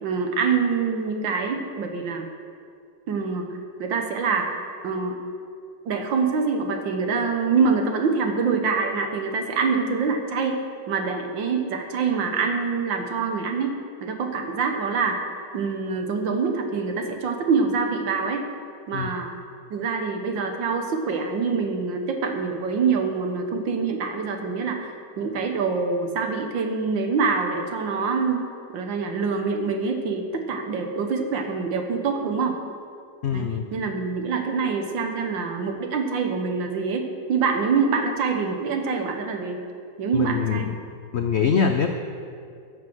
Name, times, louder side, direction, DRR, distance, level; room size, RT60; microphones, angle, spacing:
voice 1, 0.0-2.3 3.1-4.6 4.8-5.1 5.9-10.6 10.9-15.2 15.5-18.5 18.9-19.3 19.7-24.9 25.2-28.5 28.7-32.6 33.3-39.6 40.0-40.7, right 5 dB, 90° right, 5 dB, 1.9 m, -25 dB
voice 2, 33.2-33.6 40.1-40.8 41.1-41.9, left 6 dB, 80° left, 6 dB, 0.6 m, -23 dB
14.0 x 7.5 x 6.2 m, 2.4 s
omnidirectional pair, 2.0 m